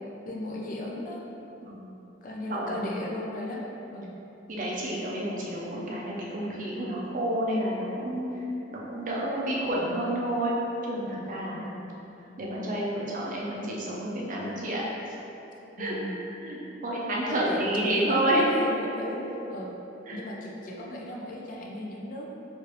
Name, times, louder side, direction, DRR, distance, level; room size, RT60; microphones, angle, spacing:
voice 1, 0.2-1.2 2.2-3.6 3.9-4.1 11.5-11.9 15.8-16.2 17.2-19.8 20.1-22.3, left 1 dB, 45° left, -2 dB, 0.4 m, -36 dB
voice 2, 4.5-8.3 8.7-10.5 10.8-11.6 12.4-14.8 15.8-16.0 16.2-18.4 19.1-19.2 20.1-20.2, right 1 dB, 45° right, -4 dB, 0.5 m, -29 dB
3.1 x 2.4 x 3.0 m, 3.0 s
head